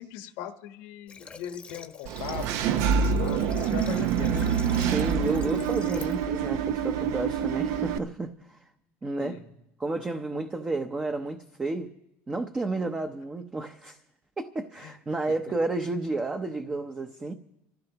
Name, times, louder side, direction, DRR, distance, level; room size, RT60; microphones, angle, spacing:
voice 1, 0.0-4.6 9.2-9.4 14.8-14.9, left 11 dB, 80° left, 6 dB, 1.3 m, -40 dB
Water / Water tap faucet, 1.1-6.2, left 5 dB, 20° left, 0.9 m, -46 dB
Engine / Mechanisms, 2.1-8.0, right 7 dB, 65° right, 0.7 m, -26 dB
voice 2, 4.3-8.6 9.0-9.4 9.8-11.9 12.3-14.0 14.4-17.3, right 2 dB, 15° right, 5 dB, 0.7 m, -31 dB
27.0 x 15.5 x 2.9 m, 0.86 s
cardioid pair, 145°, 5 cm